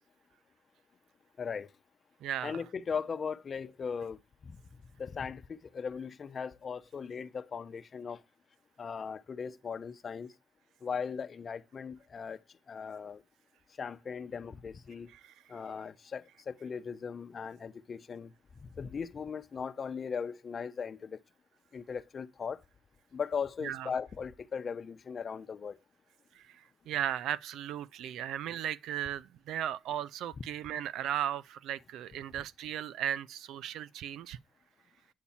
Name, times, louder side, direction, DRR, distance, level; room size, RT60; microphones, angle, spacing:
voice 1, 1.4-1.7 2.4-4.6 5.0-8.2 8.8-10.4 10.8-13.2 13.7-15.1 15.5-21.2 21.7-22.6 23.1-25.8, left 6 dB, 45° left, 0.8 m, -38 dB
voice 2, 2.2-2.6 15.2-15.3 23.6-23.9 26.4-34.4, right 11 dB, 85° right, 0.5 m, -36 dB
8.4 x 8.4 x 4.3 m
cardioid pair, 90°, 0 cm